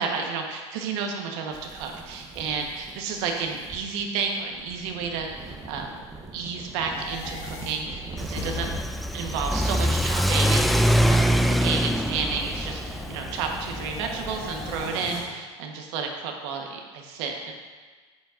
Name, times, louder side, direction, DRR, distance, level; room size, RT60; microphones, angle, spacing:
voice 1, 0.0-5.9 6.3-8.7 9.1-17.5, right 5 dB, 70° right, 2 dB, 1.3 m, -31 dB
sound 1, 1.5-8.8, right 3 dB, 25° right, 1.1 m, -42 dB
sound 2, 6.7-15.2, left 3 dB, 65° left, 2.5 m, -40 dB
Car / Accelerating revving vroom, 8.2-14.9, equal, ahead, 0.3 m, -24 dB
9.3 x 8.0 x 2.6 m, 1.4 s
hypercardioid pair, 85°, 15 cm